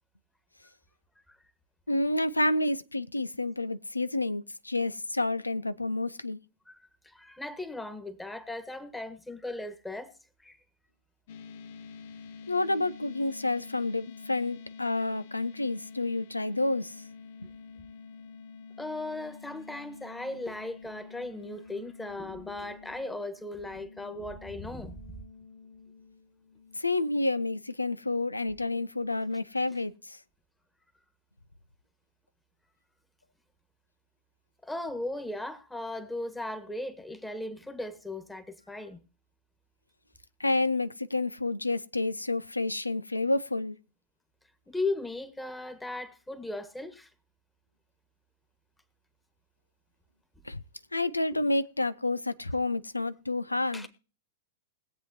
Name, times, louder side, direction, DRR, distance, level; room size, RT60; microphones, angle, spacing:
voice 1, 1.9-6.4 12.5-17.0 26.8-30.2 40.4-43.8 50.5-50.6 50.9-53.9, left 2 dB, 85° left, 0.5 m, -29 dB
voice 2, 7.0-10.1 10.4-10.6 18.8-25.0 34.6-39.0 44.7-47.1 51.3-51.4 53.7-53.9, left 2 dB, 5° left, 1.6 m, -37 dB
sound 1, 11.3-26.8, left 5 dB, 55° left, 0.7 m, -48 dB
20.5 x 8.0 x 2.9 m
figure-of-eight pair, 100°, 0 cm